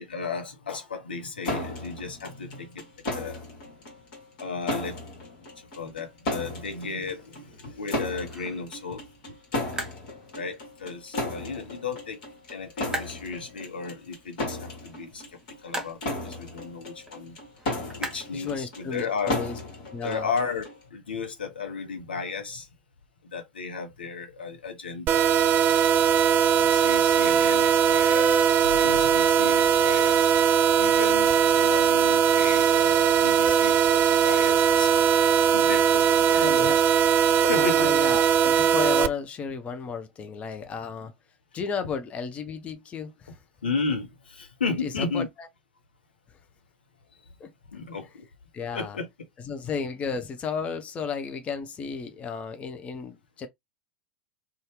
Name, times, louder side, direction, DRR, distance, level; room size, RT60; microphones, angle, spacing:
voice 1, 0.0-2.8 3.1-3.4 4.4-5.0 5.6-9.0 10.3-12.2 12.5-15.2 15.6-17.4 18.0-19.4 20.0-22.7 23.2-25.8 26.5-30.3 30.8-36.7 37.5-37.9 43.6-45.3 47.7-48.2 48.7-49.1, left 4 dB, 75° left, 0.9 m, -34 dB
sound 1, 1.4-20.8, left 2 dB, 55° left, 1.4 m, -35 dB
sound 2, 5.9-19.1, right 1 dB, 10° right, 1.0 m, -43 dB
voice 2, 18.3-19.6 19.9-20.3 36.3-36.9 37.5-41.1 41.5-43.4 44.8-45.5 47.4-47.5 48.5-49.0 49.4-53.5, left 6 dB, 25° left, 0.5 m, -33 dB
sound 3, 25.1-39.1, right 8 dB, 35° right, 0.3 m, -20 dB
2.7 x 2.3 x 3.2 m
figure-of-eight pair, 85°, 5 cm